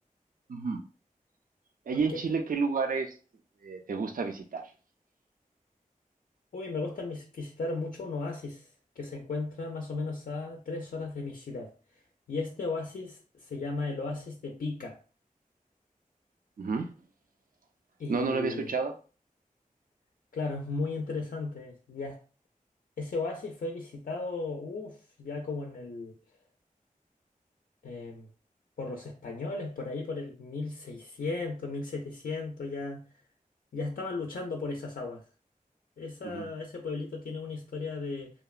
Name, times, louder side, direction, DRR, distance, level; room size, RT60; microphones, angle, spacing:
voice 1, 0.5-0.8 1.9-3.1 3.6-4.6 16.6-16.9 18.1-18.9 36.2-36.5, right 4 dB, 70° right, 0.4 m, -30 dB
voice 2, 6.5-8.7 9.0-11.7 12.3-15.0 18.0-18.7 20.3-22.2 23.0-26.2 27.8-28.3 28.8-33.0 33.7-35.2 36.0-38.3, left 3 dB, 80° left, 0.4 m, -35 dB
2.8 x 2.1 x 2.3 m
wide cardioid pair, 45°, 15 cm